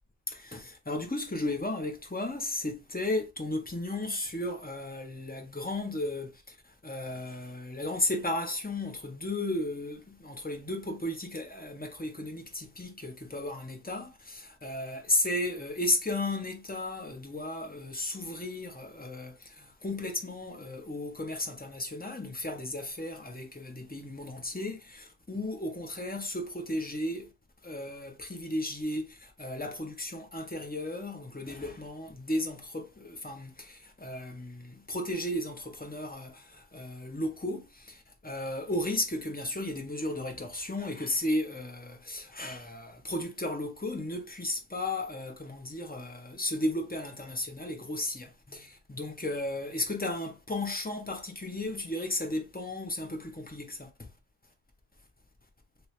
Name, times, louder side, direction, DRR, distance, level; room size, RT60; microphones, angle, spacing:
voice 1, 0.3-27.3 27.6-54.1, left 1 dB, 10° left, 0.4 m, -34 dB
2.9 x 2.9 x 3.1 m
omnidirectional pair, 1.1 m